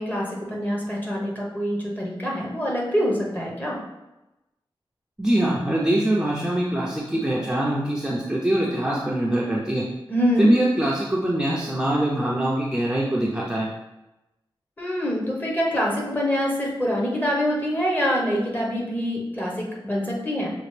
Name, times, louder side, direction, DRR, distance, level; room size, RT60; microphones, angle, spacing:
voice 1, 0.0-3.8 10.1-10.5 14.8-20.5, equal, 20° left, -3 dB, 1.2 m, -25 dB
voice 2, 5.2-9.8 10.4-13.7, right 1 dB, 10° right, -4 dB, 0.6 m, -23 dB
6.0 x 2.5 x 3.3 m, 0.97 s
wide cardioid pair, 100°, 9 cm